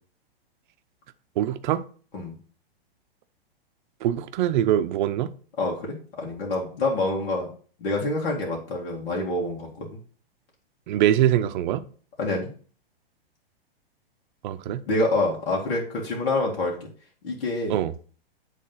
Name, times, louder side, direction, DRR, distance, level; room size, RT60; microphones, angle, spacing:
voice 1, 1.4-1.8 4.0-5.3 10.9-11.8 14.4-14.8 17.7-17.9, right 11 dB, 50° right, 0.7 m, -23 dB
voice 2, 5.6-7.5 7.8-10.0 12.2-12.5 14.9-16.9 17.2-17.8, left 2 dB, 65° left, 2.3 m, -27 dB
8.5 x 3.6 x 5.5 m
hypercardioid pair, 110°, 30 cm